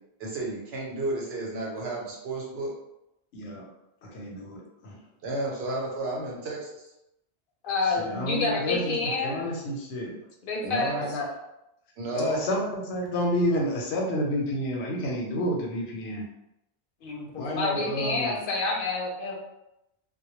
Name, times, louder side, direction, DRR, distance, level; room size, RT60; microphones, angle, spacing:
voice 1, 0.2-2.7 5.2-6.9 10.6-11.1 12.0-12.5, right 2 dB, 80° right, -3 dB, 1.0 m, -32 dB
voice 2, 3.3-3.7 4.0-5.0 7.8-10.2 11.0-11.3 12.1-16.2 17.3-18.4, equal, 90° left, -1 dB, 0.9 m, -30 dB
voice 3, 7.6-9.3 10.4-10.9 17.0-19.3, left 3 dB, 65° left, 0 dB, 0.7 m, -28 dB
2.2 x 2.1 x 3.0 m, 0.87 s
omnidirectional pair, 1.1 m